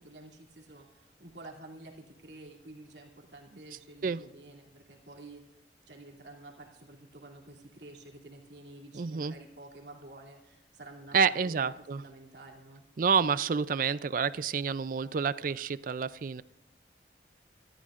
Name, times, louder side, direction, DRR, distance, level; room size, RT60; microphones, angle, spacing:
voice 1, 0.0-5.4 5.9-12.8, right 2 dB, 75° right, 0 dB, 2.8 m, -50 dB
voice 2, 8.9-9.3 11.1-12.0 13.0-16.4, right 6 dB, 50° right, 16 dB, 0.4 m, -28 dB
24.5 x 13.5 x 2.5 m, 0.88 s
head